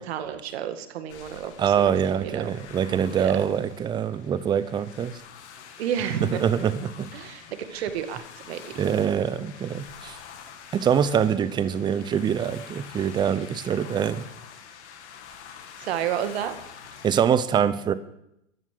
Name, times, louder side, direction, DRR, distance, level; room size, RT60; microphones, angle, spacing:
voice 1, 0.1-1.9 2.2-2.5 3.1-3.4 5.8-6.4 7.1-7.4 7.7-8.6 15.8-16.5, right 9 dB, 55° right, 9 dB, 1.9 m, -30 dB
sound 1, 1.1-17.2, left 7 dB, 60° left, 2.3 m, -46 dB
voice 2, 1.6-5.2 6.4-7.1 8.8-10.2 10.7-14.2 17.0-17.9, right 8 dB, 10° right, 15 dB, 0.6 m, -24 dB
14.5 x 11.0 x 6.6 m, 0.78 s
hypercardioid pair, 120°, 38 cm